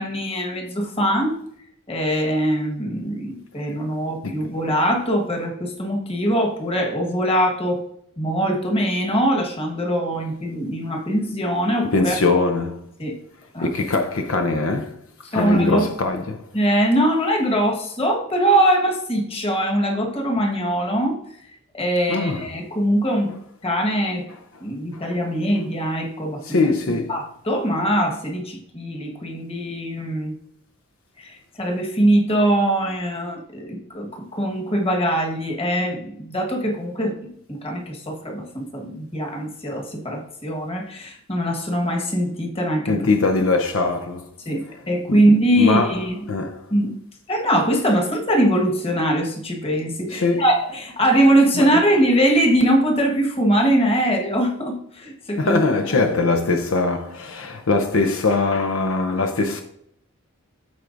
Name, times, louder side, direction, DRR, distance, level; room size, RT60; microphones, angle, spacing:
voice 1, 0.0-1.4 1.9-7.8 8.2-12.1 13.0-13.1 13.5-13.7 15.3-15.9 16.5-21.2 21.7-23.3 23.6-24.3 24.6-26.7 27.1-30.3 31.2-43.0 44.4-46.2 46.7-46.9 47.3-55.6, right 1 dB, 25° left, 1.4 m, -22 dB
voice 2, 4.2-4.6 11.9-12.9 13.6-15.0 15.3-16.4 22.1-22.5 26.4-27.1 42.9-44.3 45.1-45.2 45.6-46.0 46.3-46.7 50.1-50.4 51.6-51.7 55.4-59.6, left 3 dB, 70° left, 0.6 m, -21 dB
13.5 x 4.5 x 2.6 m
head